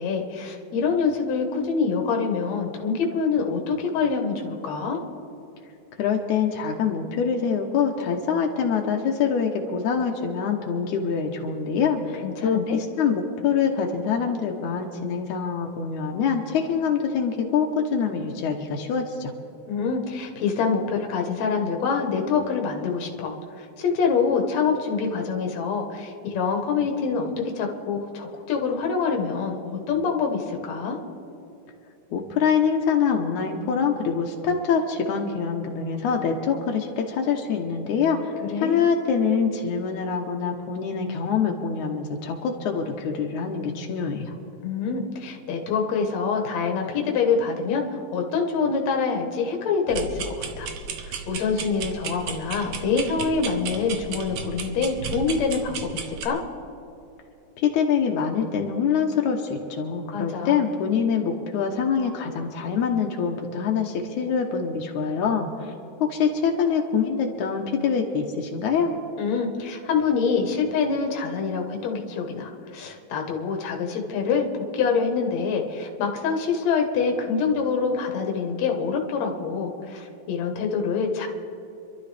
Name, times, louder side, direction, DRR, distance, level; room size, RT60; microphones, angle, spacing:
voice 1, 0.0-5.0 12.2-12.8 19.7-23.3 23.8-27.3 27.6-31.0 38.5-38.8 44.6-50.7 51.0-56.4 60.1-60.6 69.2-81.3, left 5 dB, 70° left, 2 dB, 2.6 m, -25 dB
voice 2, 6.0-19.3 32.1-44.4 57.6-65.7 66.0-68.9, left 6 dB, 85° left, 1 dB, 2.4 m, -25 dB
sound 1, 49.9-56.3, right 5 dB, 70° right, 2.1 m, -34 dB
27.0 x 12.5 x 3.4 m, 2.9 s
omnidirectional pair, 3.3 m